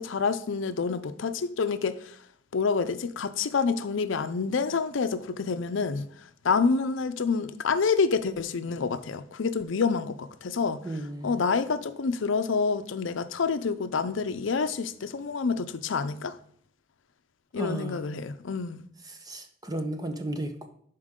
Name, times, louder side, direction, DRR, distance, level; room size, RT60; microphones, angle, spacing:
voice 1, 0.0-2.2 2.5-6.1 6.4-10.8 11.2-16.4 17.5-18.8, left 5 dB, 80° left, 0.5 m, -28 dB
voice 2, 10.8-11.4 17.6-18.0 19.1-20.7, right 1 dB, 20° right, 0.7 m, -34 dB
11.5 x 4.5 x 3.7 m
head